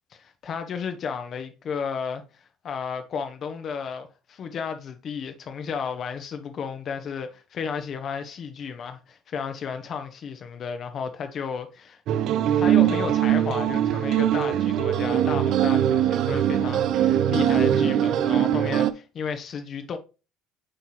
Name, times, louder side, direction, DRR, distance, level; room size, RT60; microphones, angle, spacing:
voice 1, 0.1-12.0 12.5-20.0, left 6 dB, 45° left, 0.9 m, -33 dB
sound 1, 12.1-18.9, right 11 dB, 60° right, 0.5 m, -22 dB
7.7 x 4.1 x 3.1 m
hypercardioid pair, 70°, 0 cm